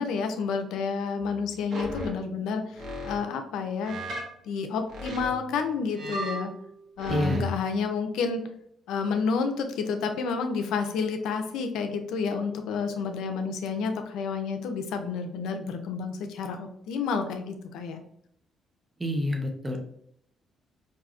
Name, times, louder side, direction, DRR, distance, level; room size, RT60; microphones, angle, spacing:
voice 1, 0.0-4.0 4.4-6.5 7.0-8.4 8.9-18.0, left 5 dB, 85° left, 6 dB, 0.5 m, -30 dB
sound 1, 1.2-2.4 2.8-3.2 3.8-4.3 4.9-7.5, equal, 65° right, 1.1 m, -35 dB
voice 2, 7.1-7.5 19.0-19.8, left 1 dB, 20° right, 3 dB, 0.8 m, -28 dB
4.6 x 2.6 x 2.5 m, 0.70 s
cardioid pair, 90°, 0 cm